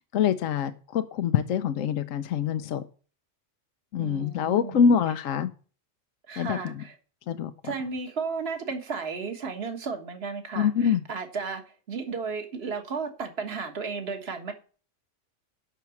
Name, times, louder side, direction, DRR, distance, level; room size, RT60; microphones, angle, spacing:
voice 1, 0.1-2.8 3.9-5.5 6.4-6.8 7.3-7.5 10.6-11.0, left 7 dB, 75° left, 1.1 m, -25 dB
voice 2, 4.0-4.8 6.3-7.0 7.6-14.5, right 5 dB, 50° right, 1.7 m, -34 dB
10.5 x 6.0 x 7.1 m
omnidirectional pair, 1.4 m